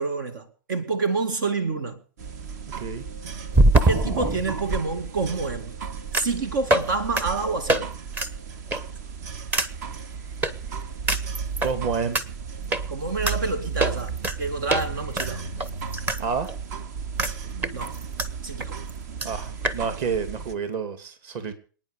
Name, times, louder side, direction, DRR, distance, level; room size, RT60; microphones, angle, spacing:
voice 1, 0.0-2.0 3.8-5.8 6.1-7.9 12.9-15.4 17.7-17.9 18.4-18.8, right 3 dB, 70° right, 2.2 m, -28 dB
sound 1, 1.0-1.1 3.5-4.8 6.1-6.4 6.7-6.9 7.2-7.3 7.7-7.8 8.1-8.3 8.7-9.0 9.5-9.7 10.4-10.5 11.1-11.7 12.1-12.2 12.7-12.8 13.3-13.4 13.8-14.4 14.7-14.8 15.2-16.2 16.5-16.6 17.2-17.3 17.6-18.3 18.6-18.7 18.9-19.0 19.2-19.3 19.6-19.8, right 1 dB, 15° right, 1.0 m, -23 dB
sound 2, 2.2-20.5, right 6 dB, 55° right, 1.6 m, -35 dB
voice 2, 11.6-12.2 16.2-16.5 19.2-21.5, right 5 dB, 35° right, 2.7 m, -29 dB
26.5 x 9.5 x 5.1 m
hypercardioid pair, 150°, 11 cm